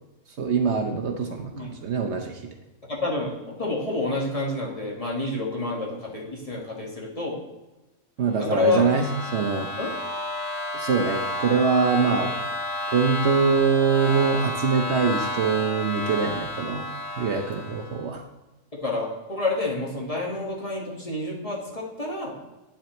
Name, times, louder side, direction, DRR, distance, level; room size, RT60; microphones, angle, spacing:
voice 1, 0.4-2.5 8.2-9.7 10.7-12.3 12.9-16.9 17.2-18.2, right 5 dB, 60° right, 3 dB, 1.0 m, -24 dB
voice 2, 2.9-7.4 8.5-8.8 9.8-9.9 18.7-22.4, left 3 dB, 25° left, -3 dB, 1.5 m, -28 dB
sound 1, 8.3-18.0, left 2 dB, 70° left, 1.5 m, -31 dB
9.0 x 7.3 x 3.0 m, 1.0 s
omnidirectional pair, 1.4 m